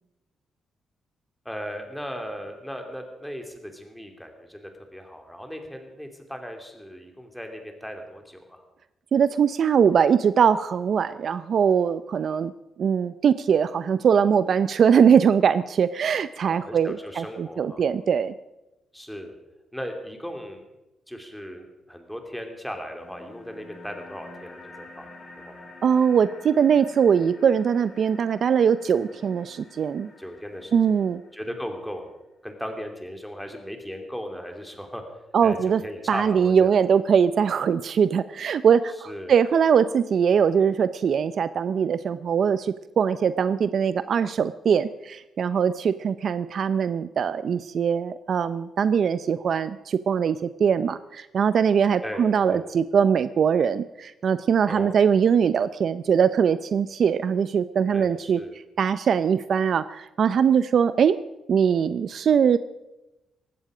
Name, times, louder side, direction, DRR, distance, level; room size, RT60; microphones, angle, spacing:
voice 1, 1.4-8.6 16.4-17.8 18.9-19.3 19.7-20.6 21.1-25.6 30.2-31.0 31.3-32.1 32.4-35.0 35.4-36.7 39.1-39.3 52.0-52.7 54.7-54.9 57.9-58.6, equal, ahead, 4 dB, 2.7 m, -37 dB
voice 2, 9.1-12.5 12.8-18.3 25.8-30.1 30.7-31.2 35.3-35.8 36.1-58.4 58.8-61.2 61.5-62.6, right 7 dB, 55° right, 14 dB, 0.5 m, -21 dB
sound 1, 23.0-32.0, left 2 dB, 45° left, 6.4 m, -48 dB
18.5 x 15.5 x 5.0 m, 1.0 s
cardioid pair, 120°, 0 cm